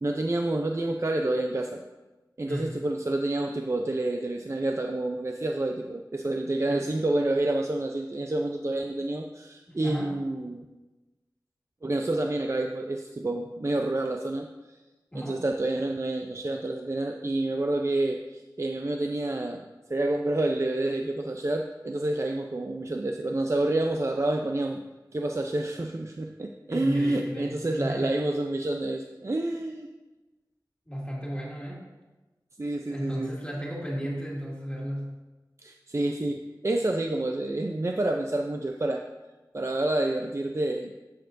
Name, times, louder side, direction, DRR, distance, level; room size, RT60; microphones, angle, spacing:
voice 1, 0.0-1.8 2.4-10.7 11.8-14.8 15.1-24.8 25.1-29.9 32.6-33.3 35.6-39.0 39.5-40.9, right 2 dB, 40° right, 3 dB, 0.5 m, -28 dB
voice 2, 9.7-10.2 15.1-15.4 26.7-28.2 30.9-31.9 32.9-35.2, equal, 15° left, -4 dB, 2.3 m, -34 dB
13.0 x 6.7 x 2.6 m, 1.1 s
wide cardioid pair, 60°, 8 cm